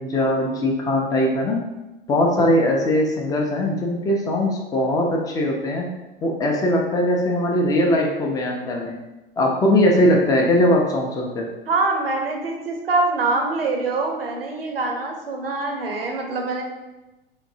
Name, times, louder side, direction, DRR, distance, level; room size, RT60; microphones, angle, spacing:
voice 1, 0.0-1.6 2.1-5.9 6.2-9.0 9.4-11.5, left 1 dB, 10° left, 0 dB, 0.5 m, -20 dB
voice 2, 11.7-16.6, right 3 dB, 75° right, 1 dB, 0.7 m, -24 dB
3.7 x 2.6 x 2.6 m, 1.0 s
figure-of-eight pair, 85°, 29 cm